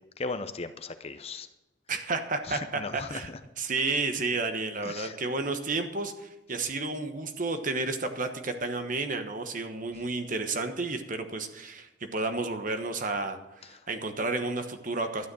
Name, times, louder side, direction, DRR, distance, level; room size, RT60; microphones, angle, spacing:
voice 1, 0.2-1.5 2.5-3.4 4.8-5.2, left 3 dB, 30° left, 10 dB, 0.6 m, -37 dB
voice 2, 1.9-3.3 3.6-13.4 13.7-15.3, right 3 dB, 40° right, 7 dB, 1.2 m, -31 dB
12.5 x 9.4 x 6.2 m, 1.0 s
head